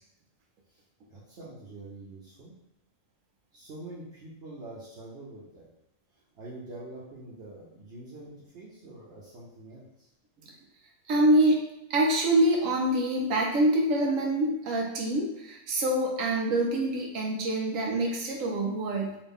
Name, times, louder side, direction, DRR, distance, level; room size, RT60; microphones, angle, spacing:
voice 1, 1.1-2.5 3.5-5.7 6.3-10.1, right 2 dB, 60° right, -7 dB, 1.0 m, -45 dB
voice 2, 11.1-11.6 11.9-19.1, right 1 dB, 85° right, -1 dB, 1.1 m, -25 dB
3.8 x 2.6 x 3.5 m, 0.90 s
omnidirectional pair, 1.3 m